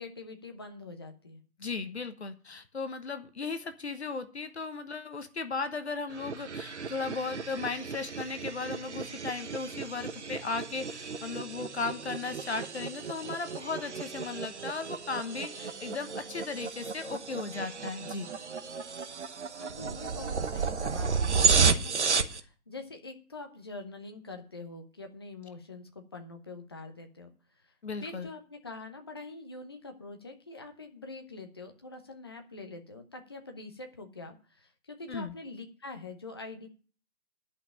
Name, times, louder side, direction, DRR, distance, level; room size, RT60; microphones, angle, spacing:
voice 1, 0.0-1.4 19.6-27.3 28.0-36.7, left 3 dB, 15° left, 5 dB, 0.7 m, -45 dB
voice 2, 1.6-18.3 27.8-28.3 35.1-35.3, left 4 dB, 45° left, 9 dB, 1.1 m, -36 dB
sound 1, 6.1-22.4, right 5 dB, 50° right, 1.1 m, -32 dB
10.5 x 5.6 x 8.7 m, 0.39 s
figure-of-eight pair, 150°, 44 cm